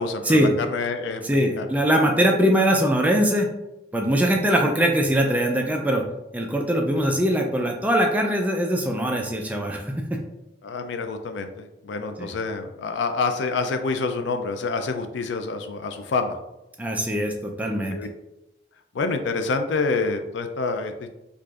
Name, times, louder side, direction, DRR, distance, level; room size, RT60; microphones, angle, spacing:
voice 1, 0.0-1.7 6.9-7.1 10.6-16.4 17.9-18.1 18.9-21.2, left 4 dB, 85° left, 7 dB, 0.4 m, -27 dB
voice 2, 1.2-3.5 3.9-6.0 6.3-10.2 12.2-12.3 16.8-18.0, equal, 10° right, 1 dB, 0.3 m, -22 dB
4.6 x 2.5 x 2.4 m, 0.92 s
head